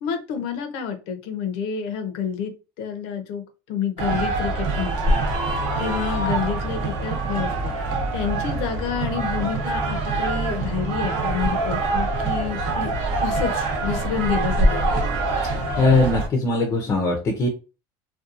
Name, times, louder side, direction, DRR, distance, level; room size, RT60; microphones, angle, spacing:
voice 1, 0.0-2.5 2.8-7.5 7.9-12.9 13.2-14.9, left 7 dB, 75° left, 6 dB, 0.6 m, -29 dB
sound 1, 4.0-16.3, right 2 dB, 65° right, 0.7 m, -24 dB
voice 2, 15.8-17.5, left 2 dB, 30° left, 2 dB, 0.5 m, -20 dB
2.6 x 2.2 x 2.5 m, 0.32 s
cardioid pair, 150°, 10 cm